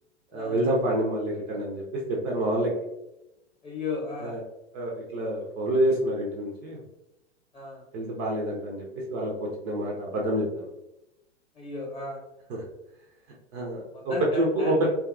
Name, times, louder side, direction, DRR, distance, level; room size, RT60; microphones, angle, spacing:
voice 1, 0.3-2.7 4.2-4.4 4.7-6.8 7.9-10.7 12.5-12.6 13.5-14.9, right 1 dB, 35° right, -2 dB, 0.6 m, -27 dB
voice 2, 3.6-4.3 7.5-7.8 11.6-12.2 13.9-14.9, left 3 dB, 15° left, -3 dB, 0.9 m, -34 dB
2.7 x 2.3 x 2.5 m, 0.89 s
figure-of-eight pair, 105°, 35 cm